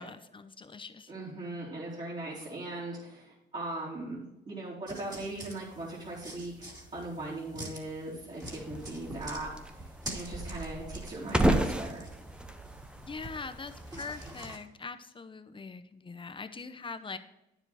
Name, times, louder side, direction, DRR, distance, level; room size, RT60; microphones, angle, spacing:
voice 1, 0.0-1.1 13.0-17.2, left 4 dB, 25° left, 11 dB, 0.8 m, -42 dB
voice 2, 1.1-12.1, right 2 dB, 35° right, -7 dB, 3.2 m, -39 dB
sound 1, 4.9-14.6, right 1 dB, 20° right, 2.7 m, -46 dB
sound 2, 8.4-14.3, right 1 dB, 5° right, 0.8 m, -33 dB
9.5 x 7.1 x 4.3 m, 0.92 s
cardioid pair, 90°, 20 cm